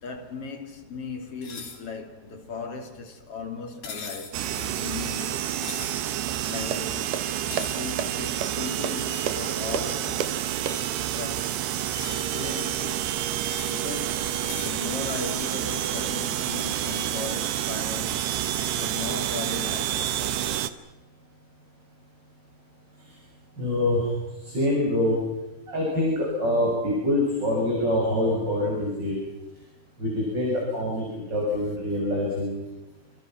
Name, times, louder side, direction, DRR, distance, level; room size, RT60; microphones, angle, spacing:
voice 1, 0.0-5.5 6.0-6.1 6.5-7.2 7.7-10.4 11.2-13.2 13.7-18.3 18.8-20.2, left 4 dB, 40° left, 3.4 m, -37 dB
sound 1, 1.4-1.8 3.8-4.4 5.6-6.0 7.5-7.8 9.1-9.3 10.7-10.9 11.8-12.3 13.5-13.8 14.5-14.8, left 5 dB, 65° left, 5.7 m, -39 dB
sound 2, 4.3-20.7, right 12 dB, 85° right, 3.2 m, -29 dB
sound 3, 6.3-11.2, right 8 dB, 65° right, 2.5 m, -34 dB
voice 2, 23.6-24.1 24.4-25.2 25.7-29.2 30.0-32.6, left 1 dB, 25° right, 7.6 m, -25 dB
29.0 x 27.5 x 6.0 m
omnidirectional pair, 4.6 m